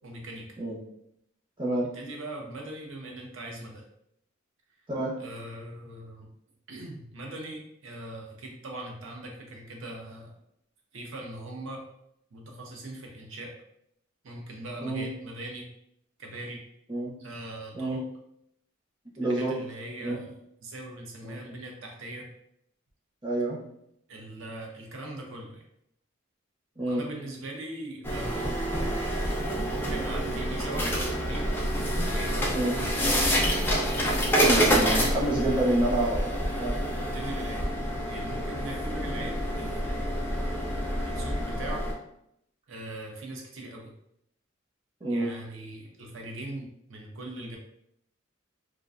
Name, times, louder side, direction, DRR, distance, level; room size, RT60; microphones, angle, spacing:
voice 1, 0.0-0.5 1.9-3.8 5.2-6.3 6.7-10.3 10.9-11.8 12.3-13.5 14.2-15.7 16.2-16.6 17.2-18.0 19.2-22.3 24.1-25.6 26.9-28.7 29.7-31.5 32.1-32.8 34.6-35.2 37.1-37.7 38.1-40.6 41.0-41.9 42.7-43.9 45.1-47.6, right 1 dB, 75° right, 1 dB, 0.6 m, -40 dB
voice 2, 1.6-1.9 4.9-5.1 14.8-15.1 16.9-17.1 17.7-18.0 19.2-19.5 20.0-20.2 21.2-21.4 23.2-23.6 26.8-27.0 32.5-32.7 34.3-36.8 45.0-45.3, right 2 dB, 20° right, -5 dB, 0.6 m, -28 dB
sound 1, 28.0-41.9, equal, 10° left, 0.3 m, -27 dB
2.4 x 2.1 x 2.4 m, 0.75 s
head